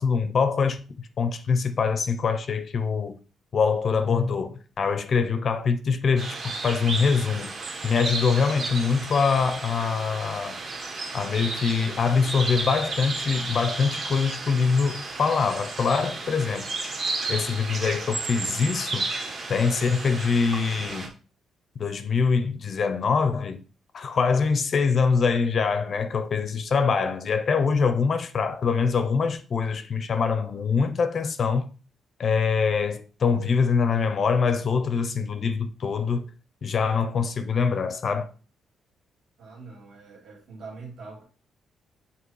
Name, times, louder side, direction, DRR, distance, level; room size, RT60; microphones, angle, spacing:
voice 1, 0.0-3.2 3.5-7.6 7.8-10.6 11.1-16.7 17.3-19.1 19.5-21.1 21.8-23.6 23.9-31.7 32.2-36.3 36.6-38.3, left 5 dB, 40° left, 0.5 m, -24 dB
sound 1, 6.2-21.1, right 3 dB, 40° right, 1.2 m, -33 dB
voice 2, 39.4-41.2, right 4 dB, 65° right, 2.2 m, -43 dB
7.6 x 2.8 x 4.7 m
cardioid pair, 165°, 0 cm